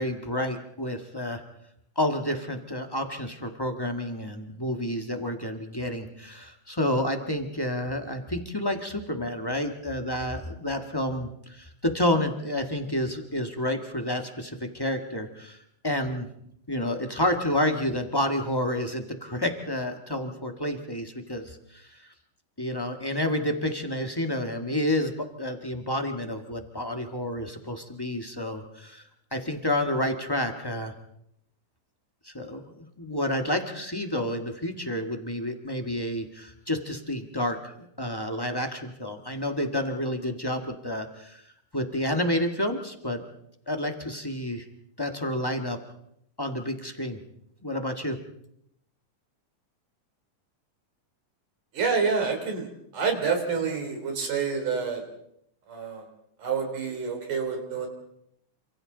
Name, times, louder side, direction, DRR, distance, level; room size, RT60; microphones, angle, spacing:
voice 1, 0.0-1.4 1.9-15.6 15.8-16.3 16.7-22.1 22.6-25.1 25.4-29.0 29.3-30.9 32.2-41.4 41.7-43.2 43.7-44.6 45.0-45.8 46.4-47.2 47.6-48.2, left 1 dB, 20° left, 4 dB, 0.5 m, -29 dB
voice 2, 51.7-52.7 52.9-55.0 55.7-56.0 56.4-57.9, right 5 dB, 90° right, 4 dB, 5.1 m, -28 dB
29.0 x 26.0 x 4.0 m, 0.74 s
omnidirectional pair, 3.5 m